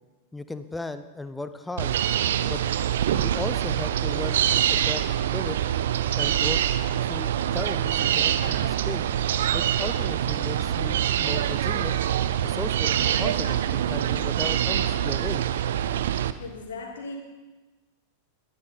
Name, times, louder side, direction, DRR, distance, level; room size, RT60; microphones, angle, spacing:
voice 1, 0.3-2.0 2.4-2.6 3.1-5.0 5.3-5.6 6.2-6.6 7.0-9.0 9.5-12.0 12.4-15.5, left 2 dB, 5° left, 11 dB, 0.9 m, -36 dB
sound 1, 1.8-16.3, right 10 dB, 60° right, 0.6 m, -25 dB
voice 2, 16.4-17.2, left 3 dB, 65° left, 2 dB, 2.6 m, -37 dB
20.5 x 12.0 x 4.1 m, 1.2 s
figure-of-eight pair, 90°, 0 cm